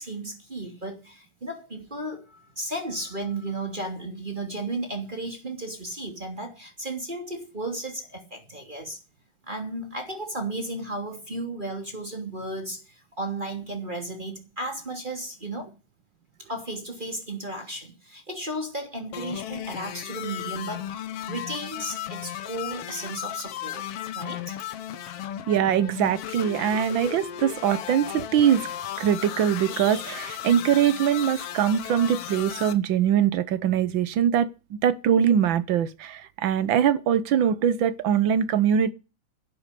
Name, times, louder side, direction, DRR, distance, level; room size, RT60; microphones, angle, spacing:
voice 1, 0.0-9.0 9.4-15.7 16.5-21.0 21.3-23.9 24.1-24.6, right 2 dB, 15° right, 2.8 m, -34 dB
sound 1, 19.1-32.7, left 11 dB, 65° left, 1.8 m, -35 dB
voice 2, 25.5-28.6 29.0-34.5 34.8-38.9, right 9 dB, 70° right, 1.1 m, -22 dB
11.5 x 8.3 x 9.9 m
omnidirectional pair, 3.3 m